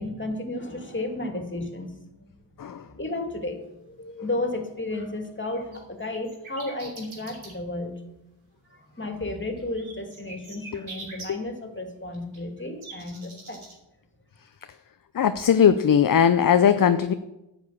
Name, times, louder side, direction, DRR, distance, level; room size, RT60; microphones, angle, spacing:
voice 1, 0.0-2.0 2.7-8.0 8.7-13.6, left 2 dB, 25° left, 5 dB, 2.3 m, -33 dB
sound 1, 5.0-7.5 9.6-11.3 12.1-13.7, right 3 dB, 85° right, 2.9 m, -43 dB
voice 2, 15.1-17.1, left 8 dB, 45° left, 11 dB, 0.6 m, -19 dB
10.5 x 5.2 x 8.4 m, 0.93 s
cardioid pair, 45°, 47 cm